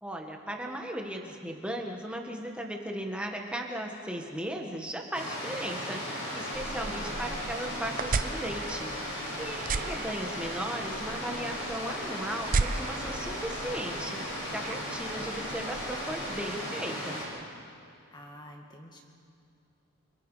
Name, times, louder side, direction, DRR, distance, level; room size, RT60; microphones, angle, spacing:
voice 1, 0.0-17.2, right 1 dB, 5° right, 1 dB, 1.7 m, -37 dB
sound 1, 5.1-17.2, equal, 55° left, 7.0 m, -36 dB
sound 2, 6.5-16.7, right 4 dB, 40° right, 0.5 m, -37 dB
voice 2, 6.9-7.5 18.1-19.0, equal, 20° left, 2 dB, 2.1 m, -47 dB
29.0 x 24.5 x 5.1 m, 2.5 s
head